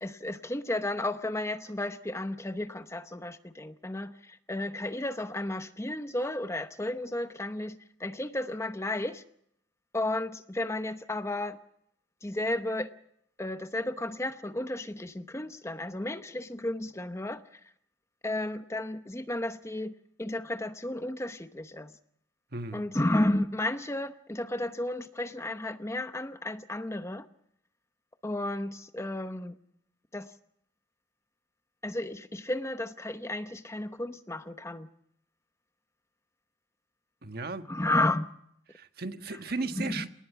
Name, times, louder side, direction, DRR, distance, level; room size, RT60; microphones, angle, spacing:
voice 1, 0.0-9.2 9.9-11.6 12.2-12.9 13.4-17.4 18.2-19.9 20.2-21.9 22.7-27.3 28.2-29.6 30.1-30.3 31.8-34.9 37.7-38.3 39.8-40.1, left 1 dB, 15° left, 0.9 m, -33 dB
voice 2, 22.5-22.9 37.2-37.7 38.7-40.1, right 3 dB, 55° right, 1.4 m, -36 dB
28.5 x 18.5 x 5.8 m
head